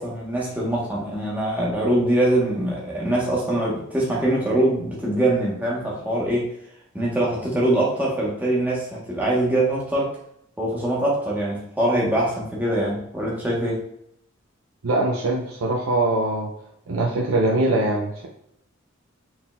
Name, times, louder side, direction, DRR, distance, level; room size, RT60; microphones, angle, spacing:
voice 1, 0.0-6.5 6.9-10.2 10.6-13.8, right 1 dB, 10° right, -5 dB, 1.0 m, -23 dB
voice 2, 14.8-16.5 16.9-18.3, right 2 dB, 75° right, -2 dB, 0.6 m, -22 dB
4.2 x 3.7 x 2.3 m, 0.75 s
head